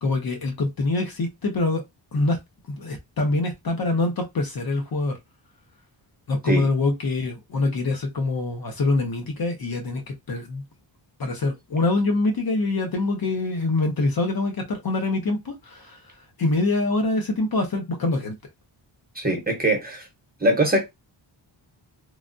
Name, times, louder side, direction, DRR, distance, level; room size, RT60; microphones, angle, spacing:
voice 1, 0.0-1.8 2.1-2.4 2.7-5.2 6.3-10.6 11.2-18.3, left 2 dB, 50° left, 0.8 m, -25 dB
voice 2, 19.1-20.1 20.4-20.9, right 1 dB, 20° right, 1.0 m, -22 dB
3.2 x 2.3 x 2.6 m
wide cardioid pair, 115°, 46 cm